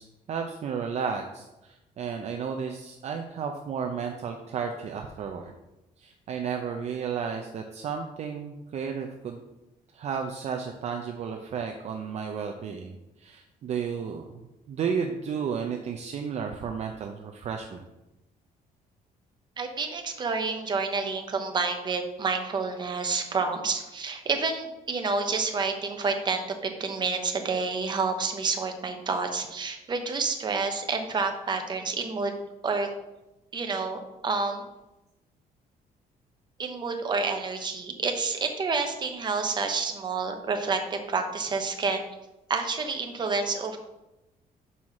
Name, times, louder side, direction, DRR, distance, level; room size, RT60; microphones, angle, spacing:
voice 1, 0.0-5.5 6.0-9.4 9.9-12.9 13.2-17.8, right 6 dB, 45° right, 3 dB, 0.6 m, -33 dB
voice 2, 19.6-32.3 32.6-32.9 33.5-34.6 36.6-42.0 42.5-43.8, right 4 dB, 30° right, 5 dB, 0.9 m, -29 dB
5.6 x 4.6 x 6.3 m, 0.97 s
cardioid pair, 155°, 16 cm